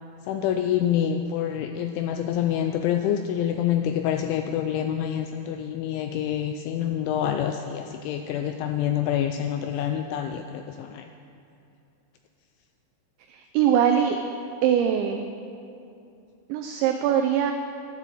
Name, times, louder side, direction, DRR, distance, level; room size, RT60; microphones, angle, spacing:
voice 1, 0.3-11.1, left 10 dB, 85° left, 6 dB, 2.7 m, -27 dB
voice 2, 13.3-14.2 14.6-15.2 16.5-17.5, right 9 dB, 85° right, 5 dB, 2.5 m, -22 dB
12.5 x 11.5 x 7.6 m, 2.6 s
omnidirectional pair, 5.9 m